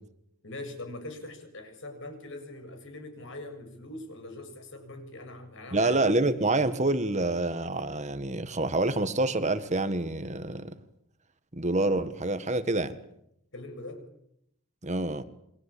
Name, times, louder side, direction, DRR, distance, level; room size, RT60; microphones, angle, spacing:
voice 1, 0.4-6.0 13.5-14.0, left 2 dB, 60° left, 7 dB, 7.2 m, -42 dB
voice 2, 5.7-10.8 11.5-12.9 14.8-15.2, right 2 dB, 30° right, 10 dB, 1.6 m, -27 dB
29.0 x 23.5 x 8.6 m, 0.76 s
head